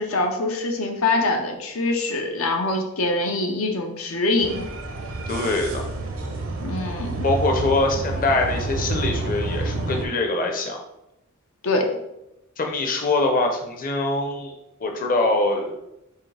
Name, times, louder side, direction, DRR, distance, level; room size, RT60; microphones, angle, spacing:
voice 1, 0.0-4.6 6.6-7.3 11.6-11.9, left 2 dB, 90° left, 3 dB, 0.7 m, -24 dB
sound 1, 4.4-10.1, right 2 dB, 75° right, 0.7 m, -29 dB
voice 2, 5.3-5.8 7.2-10.8 12.6-14.5 14.8-15.8, left 2 dB, 40° left, 3 dB, 0.6 m, -23 dB
4.7 x 3.1 x 3.3 m, 0.87 s
head